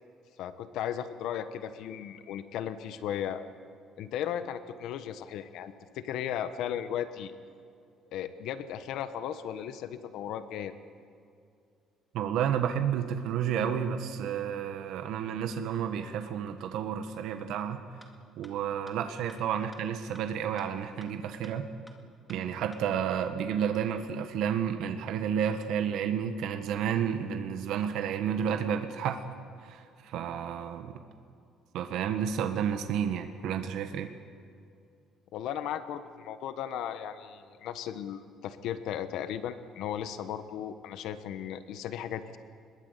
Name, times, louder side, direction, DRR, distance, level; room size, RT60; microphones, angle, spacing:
voice 1, 0.4-3.4 4.0-7.3 8.1-10.7 35.3-42.4, left 9 dB, 70° left, 11 dB, 1.2 m, -36 dB
voice 2, 12.1-17.8 18.4-21.7 22.3-29.2 29.6-31.0 31.7-34.1, right 8 dB, 70° right, 7 dB, 1.5 m, -31 dB
sound 1, 17.6-17.7 18.0-18.1 18.4-18.5 18.9-19.0 19.3-19.4 19.7-19.8 20.1-20.2 20.6-20.7 21.0-21.1 21.4-21.5 21.9-22.0 22.3-22.4 22.7-22.8, left 1 dB, 5° left, 2.1 m, -53 dB
23.0 x 21.5 x 8.3 m, 2.4 s
cardioid pair, 150°, 0 cm